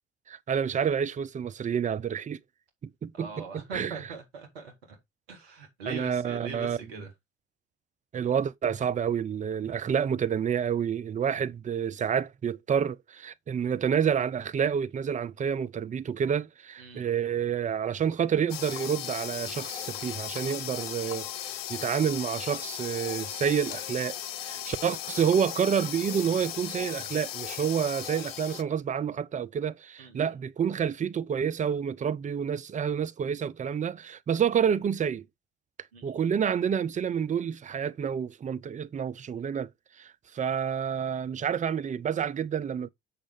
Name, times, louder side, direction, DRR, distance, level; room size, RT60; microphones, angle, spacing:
voice 1, 0.3-2.4 2.8-3.3 3.7-4.0 5.9-6.8 8.1-35.2 36.0-39.7 40.0-42.9, right 7 dB, 25° right, 0.6 m, -29 dB
voice 2, 3.1-5.0 5.3-7.1 16.8-17.1 24.5-24.8 30.0-30.4 35.9-36.2, right 4 dB, 75° right, 2.5 m, -42 dB
sound 1, 18.5-28.6, left 12 dB, 75° left, 0.5 m, -37 dB
7.5 x 6.4 x 3.4 m
figure-of-eight pair, 55°, 30 cm